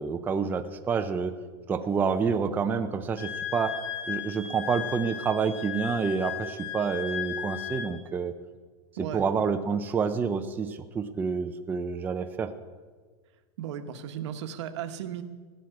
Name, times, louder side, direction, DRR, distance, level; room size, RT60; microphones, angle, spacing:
voice 1, 0.0-1.3 1.7-3.7 4.1-8.3 9.1-12.5, right 5 dB, 10° right, 6 dB, 0.5 m, -28 dB
Wind instrument woodwind instrument, 3.2-7.9, left 10 dB, 55° left, 2.2 m, -36 dB
voice 2, 9.0-9.3 13.6-15.2, right 9 dB, 75° right, 7 dB, 1.2 m, -35 dB
16.0 x 6.3 x 9.4 m, 1.5 s
supercardioid pair, 160°, 15 cm